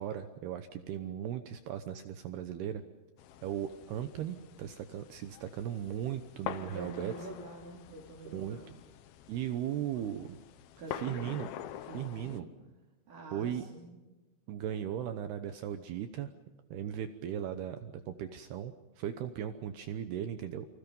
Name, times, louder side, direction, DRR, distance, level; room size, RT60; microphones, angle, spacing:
voice 1, 0.0-2.8 3.4-7.1 8.3-8.6 9.3-10.4 10.9-11.5 11.9-12.4 13.3-13.6 14.5-16.3 16.7-20.7, right 10 dB, 75° right, 9 dB, 2.6 m, -37 dB
sound 1, 3.2-12.4, left 11 dB, 85° left, 2.2 m, -46 dB
voice 2, 6.6-8.7 10.8-11.4 11.8-12.5 13.1-14.0, right 3 dB, 45° right, -2 dB, 4.5 m, -46 dB
29.0 x 25.5 x 5.4 m, 1.1 s
omnidirectional pair, 5.7 m